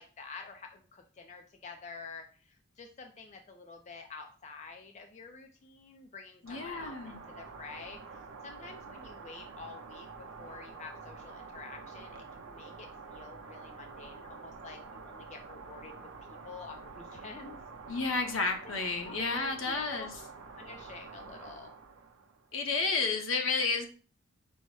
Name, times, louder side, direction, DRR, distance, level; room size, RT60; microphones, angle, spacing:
voice 1, 0.0-15.9 16.3-17.6 18.6-18.8 19.1-20.1 20.6-21.7, left 4 dB, 35° left, 4 dB, 0.4 m, -48 dB
voice 2, 6.4-7.2 17.9-20.1 22.5-23.9, left 4 dB, 70° left, 4 dB, 0.8 m, -31 dB
sound 1, 6.5-22.5, right 4 dB, 80° right, 0.6 m, -48 dB
5.3 x 2.1 x 4.7 m, 0.40 s
head